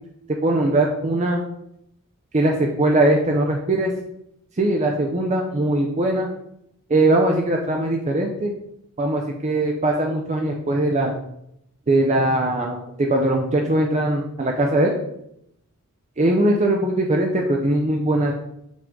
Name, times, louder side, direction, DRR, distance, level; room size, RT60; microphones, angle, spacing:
voice 1, 0.4-1.4 2.3-3.9 4.6-6.3 6.9-8.5 9.0-11.2 11.9-14.9 16.2-18.3, right 1 dB, 30° right, 1 dB, 0.6 m, -20 dB
7.2 x 3.8 x 3.7 m, 0.77 s
head